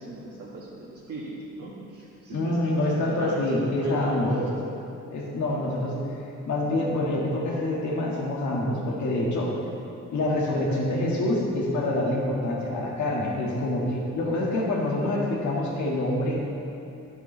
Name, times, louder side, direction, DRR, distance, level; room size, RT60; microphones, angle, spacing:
voice 1, 0.0-4.4, right 2 dB, 50° right, -7 dB, 1.9 m, -39 dB
voice 2, 2.3-4.5 5.1-5.9 6.4-9.5 10.1-16.4, left 1 dB, 70° left, -3 dB, 2.0 m, -26 dB
11.5 x 8.1 x 3.4 m, 2.7 s
cardioid pair, 90°, 30 cm